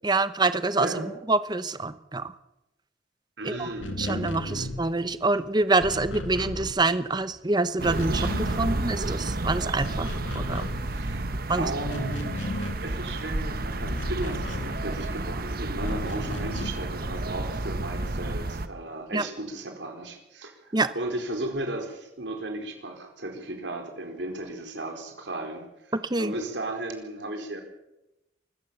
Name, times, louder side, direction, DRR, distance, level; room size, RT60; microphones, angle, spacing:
voice 1, 0.0-2.3 3.4-3.7 4.0-10.7 11.5-11.7 19.1-19.2 20.7-20.9 25.9-26.3, right 3 dB, 20° right, 13 dB, 0.8 m, -26 dB
voice 2, 0.8-1.1 3.4-4.7 10.7-11.2 11.6-12.2 12.6-25.6 26.2-27.6, right 1 dB, 70° right, 4 dB, 4.5 m, -35 dB
sound 1, 3.7-7.4 7.6-9.4 9.7-15.3 15.8-17.0, left 1 dB, 85° left, 2.5 m, -35 dB
sound 2, 7.8-18.7, right 2 dB, 50° right, 1.2 m, -31 dB
25.0 x 14.5 x 7.1 m, 0.93 s
head